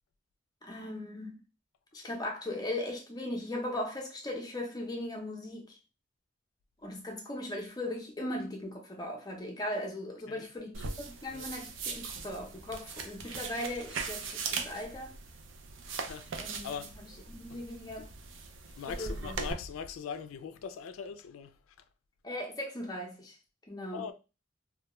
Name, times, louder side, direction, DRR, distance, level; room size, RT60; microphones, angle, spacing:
voice 1, 0.6-1.4 1.9-5.8 6.8-15.2 16.4-16.7 17.3-18.1 19.0-19.4 22.2-23.4 23.7-24.1, left 1 dB, 20° left, 0.5 m, -38 dB
sound 1, 10.7-19.5, right 4 dB, 70° right, 0.4 m, -40 dB
voice 2, 15.9-17.0 17.5-17.6 18.0-18.1 18.8-21.6 23.9-24.1, left 6 dB, 90° left, 0.3 m, -41 dB
2.2 x 2.2 x 2.9 m
head